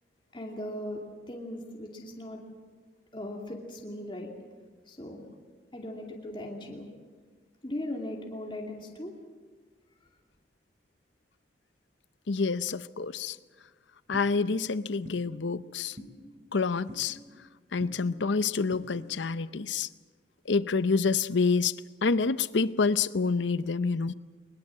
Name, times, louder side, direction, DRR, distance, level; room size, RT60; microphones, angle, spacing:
voice 1, 0.3-2.4 3.1-4.3 4.9-5.2 5.7-6.9 7.6-9.1, left 1 dB, 25° left, 0 dB, 2.6 m, -38 dB
voice 2, 12.3-13.4 14.1-16.0 16.5-17.2 17.7-19.9 20.5-21.7 22.0-24.1, left 4 dB, 85° left, 15 dB, 0.7 m, -27 dB
sound 1, 14.1-14.3 15.0-15.2 16.0-16.1 16.9-17.0 17.8-17.9 18.7-18.9, left 1 dB, 40° right, 3.0 m, -43 dB
23.0 x 21.0 x 7.5 m, 1.5 s
head